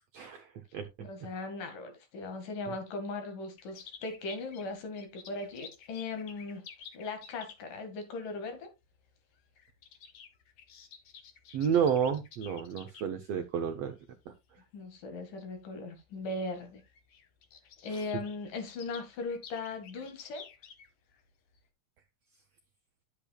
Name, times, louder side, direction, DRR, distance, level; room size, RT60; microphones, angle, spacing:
voice 1, 0.1-1.1 2.7-2.8 11.5-14.0 14.3-14.4 17.9-18.0, right 7 dB, 75° right, 1.5 m, -31 dB
voice 2, 1.0-6.6 6.9-8.7 14.7-16.8 17.8-20.5, left 3 dB, 75° left, 3.4 m, -38 dB
sound 1, 3.6-7.8 8.8-9.1 9.4-13.0 13.7-14.0 14.7-14.8 15.1-15.2 16.2-16.3 16.5-16.6 16.8-21.2 21.5-21.6, left 7 dB, 60° left, 2.1 m, -52 dB
10.0 x 8.5 x 2.3 m
omnidirectional pair, 3.8 m